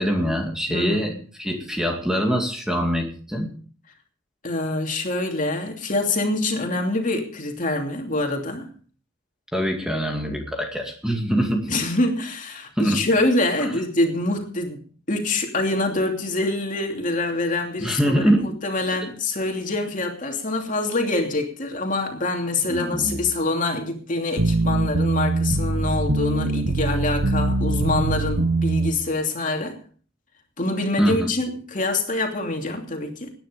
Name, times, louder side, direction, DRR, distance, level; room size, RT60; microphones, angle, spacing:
voice 1, 0.0-1.1 1.4-3.6 9.5-11.8 12.8-13.0 13.6-13.7 17.8-18.5 18.9-19.0 22.7-23.2 31.0-31.3, equal, 5° right, 2 dB, 2.2 m, -24 dB
voice 2, 0.7-1.2 4.4-8.7 11.7-14.8 15.1-29.8 30.6-33.3, left 2 dB, 40° left, 3 dB, 2.9 m, -25 dB
sound 1, 24.4-28.9, right 2 dB, 75° right, 1.4 m, -22 dB
18.5 x 10.0 x 5.2 m, 0.44 s
head